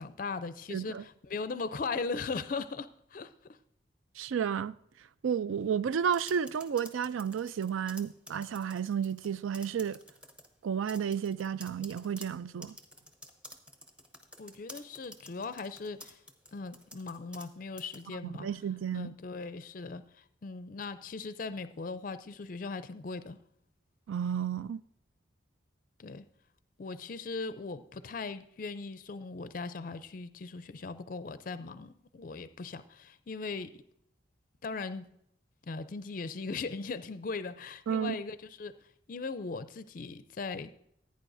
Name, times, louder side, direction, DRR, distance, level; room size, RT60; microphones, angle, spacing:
voice 1, 0.0-3.6 14.4-16.2 16.5-18.5 18.9-23.4 26.0-26.2 26.8-33.8 34.6-35.1 35.6-38.7 39.1-40.7, left 4 dB, 45° left, 0.4 m, -39 dB
voice 2, 0.7-1.0 4.2-4.8 5.2-10.0 10.6-12.8 18.4-19.1 24.1-24.8 37.9-38.2, right 7 dB, 85° right, 0.4 m, -32 dB
sound 1, 6.0-9.3 9.5-10.5 10.9-17.5 17.8-18.0, left 1 dB, 5° right, 0.7 m, -50 dB
15.5 x 9.3 x 2.6 m
head